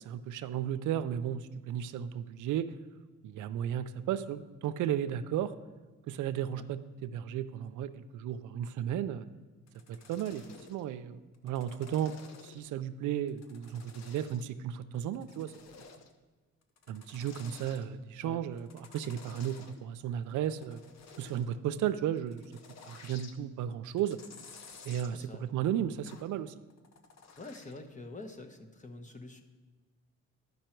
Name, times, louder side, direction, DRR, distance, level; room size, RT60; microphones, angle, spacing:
voice 1, 0.0-2.7 3.2-5.5 6.1-9.2 9.9-10.4 10.7-12.1 12.4-15.5 16.9-20.8 21.2-22.5 22.9-24.2 24.8-26.5, right 10 dB, 80° right, 12 dB, 0.5 m, -34 dB
sound 1, 9.7-10.8 11.3-12.8 13.3-14.5 14.9-16.2 16.6-17.8 18.6-19.8 20.2-21.5 22.2-23.4 23.8-25.1 26.1-26.3 26.7-27.8 28.2-28.3, left 5 dB, 60° left, 0.9 m, -53 dB
voice 2, 25.1-25.4 27.4-29.4, left 2 dB, 25° left, 5 dB, 1.0 m, -46 dB
12.0 x 5.4 x 4.5 m, 1.3 s
cardioid pair, 90°, 30 cm